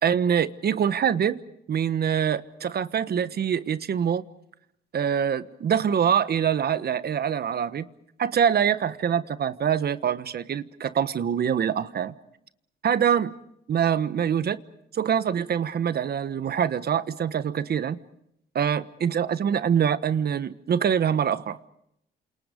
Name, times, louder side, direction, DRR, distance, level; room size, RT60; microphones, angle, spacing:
voice 1, 0.0-1.4 1.7-4.2 4.9-7.9 8.2-12.1 12.8-13.3 13.7-14.6 14.9-18.0 18.5-21.6, right 8 dB, 55° right, 1.2 m, -24 dB
29.5 x 27.5 x 5.2 m
cardioid pair, 90°, 20 cm